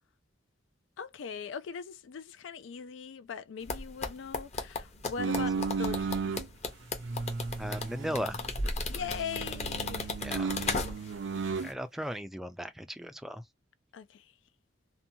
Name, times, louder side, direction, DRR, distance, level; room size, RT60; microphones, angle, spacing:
voice 1, 1.0-6.3 8.9-10.1 10.4-11.1 11.4-11.6 13.9-14.3, left 6 dB, 80° left, 0.4 m, -41 dB
sound 1, 3.7-11.2 11.5-11.7, left 3 dB, 35° left, 0.7 m, -35 dB
sound 2, 5.2-6.4 7.0-8.7 9.0-11.7, right 5 dB, 70° right, 0.5 m, -34 dB
voice 2, 7.6-8.4 8.9-9.0 10.2-10.5 11.6-13.4, equal, ahead, 0.3 m, -37 dB
2.6 x 2.2 x 2.7 m
head